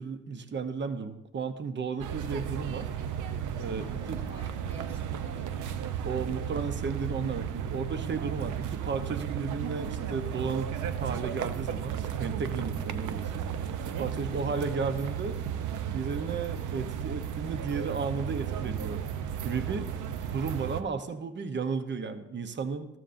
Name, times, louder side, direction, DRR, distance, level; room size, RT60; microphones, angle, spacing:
voice 1, 0.0-2.9 3.6-4.2 6.0-10.7 11.0-13.4 13.8-15.4 15.9-19.0 19.4-19.9 20.3-22.9, right 5 dB, 40° right, 10 dB, 0.9 m, -34 dB
sound 1, 2.0-20.8, right 8 dB, 85° right, 0.7 m, -34 dB
voice 2, 3.8-6.0, equal, 20° right, -2 dB, 4.4 m, -50 dB
14.0 x 12.5 x 2.6 m, 0.87 s
cardioid pair, 90°, 30 cm